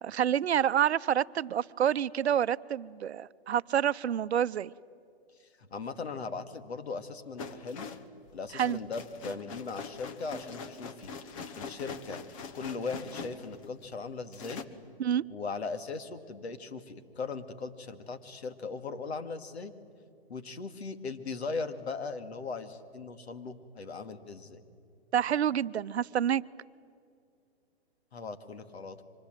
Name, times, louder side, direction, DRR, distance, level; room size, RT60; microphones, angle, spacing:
voice 1, 0.0-4.7 8.5-8.8 15.0-15.2 25.1-26.4, right 9 dB, 80° right, 16 dB, 0.7 m, -28 dB
voice 2, 5.7-7.9 8.3-11.1 11.6-12.2 12.5-14.7 15.3-19.7 20.3-24.7 28.1-29.0, left 4 dB, 85° left, 9 dB, 2.2 m, -39 dB
sound 1, 7.4-13.9 14.3-14.6, left 5 dB, 30° left, 1.2 m, -43 dB
25.5 x 25.0 x 9.1 m, 2.4 s
hypercardioid pair, 160°, 32 cm